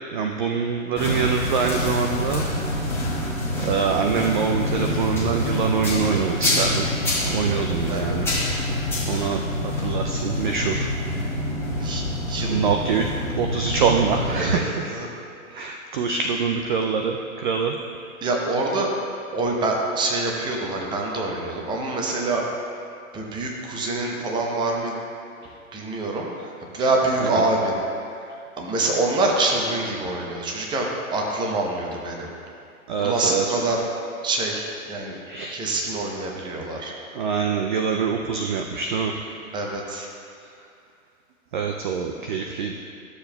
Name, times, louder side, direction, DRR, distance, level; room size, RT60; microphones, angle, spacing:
voice 1, 0.1-2.4 3.7-6.8 7.3-8.2 9.1-9.4 9.8-10.8 12.5-13.0 13.4-14.5 15.6-17.1 17.4-17.7 32.9-33.4 35.3-35.5 37.2-39.1 41.5-42.7, right 6 dB, 40° right, 3 dB, 0.4 m, -24 dB
sound 1, 1.0-14.5, left 1 dB, 5° left, 1.5 m, -26 dB
voice 2, 7.9-8.5 11.8-12.6 14.4-15.1 15.5-15.8 18.2-18.9 19.3-22.5 23.1-25.0 25.7-28.3 28.6-32.3 33.0-33.8 34.2-35.2 35.5-36.9 39.5-40.1, right 2 dB, 10° right, -1 dB, 0.7 m, -26 dB
13.0 x 7.0 x 2.3 m, 2.4 s
hypercardioid pair, 125°, 42 cm